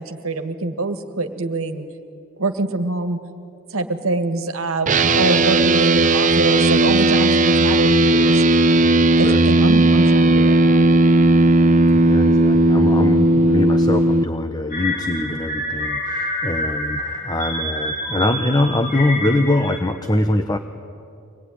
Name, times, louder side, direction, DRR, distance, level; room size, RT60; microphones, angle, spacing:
voice 1, 0.0-1.9 2.4-3.2 3.7-8.4 9.2-10.9, right 2 dB, 70° right, 8 dB, 1.8 m, -24 dB
sound 1, 4.9-14.2, right 2 dB, 35° right, 0.7 m, -15 dB
voice 2, 11.9-20.6, left 1 dB, 20° left, 7 dB, 0.9 m, -23 dB
sound 2, 14.7-19.8, left 1 dB, 40° left, 5.2 m, -27 dB
24.5 x 19.0 x 9.9 m, 2.4 s
head